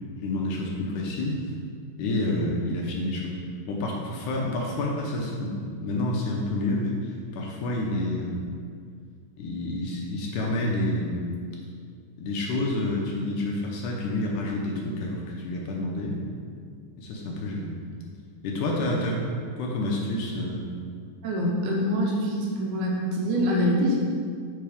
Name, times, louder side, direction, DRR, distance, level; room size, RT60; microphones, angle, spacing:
voice 1, 0.2-1.4 2.0-3.4 3.7-8.4 9.4-11.3 12.2-16.2 17.0-17.8 18.4-19.2 19.6-20.7, left 1 dB, 75° left, -2 dB, 2.1 m, -29 dB
voice 2, 21.2-24.0, equal, 75° right, -2 dB, 2.0 m, -25 dB
7.0 x 3.9 x 4.9 m, 2.1 s
omnidirectional pair, 3.9 m